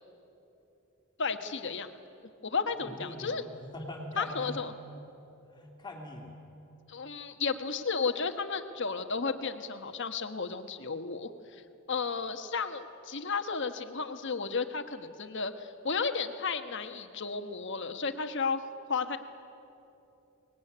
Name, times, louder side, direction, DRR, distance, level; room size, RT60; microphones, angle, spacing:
voice 1, 1.2-1.9 2.4-3.4 4.2-4.7 6.9-11.6 11.9-18.6 18.9-19.2, left 5 dB, 60° left, 8 dB, 1.3 m, -33 dB
voice 2, 2.8-4.6 5.5-6.3, left 1 dB, 20° left, 0 dB, 3.0 m, -42 dB
23.0 x 19.5 x 9.9 m, 3.0 s
head